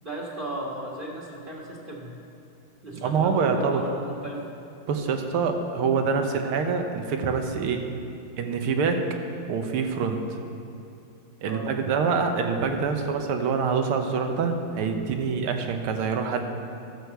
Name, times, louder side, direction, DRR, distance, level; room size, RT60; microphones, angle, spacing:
voice 1, 0.0-2.1 2.8-4.4 11.5-11.7, right 1 dB, 25° right, -4 dB, 1.5 m, -36 dB
voice 2, 3.0-3.8 4.9-7.8 8.4-9.1 9.5-10.4 11.4-16.4, right 5 dB, 90° right, 5 dB, 1.8 m, -25 dB
12.5 x 6.5 x 7.0 m, 2.6 s
omnidirectional pair, 2.3 m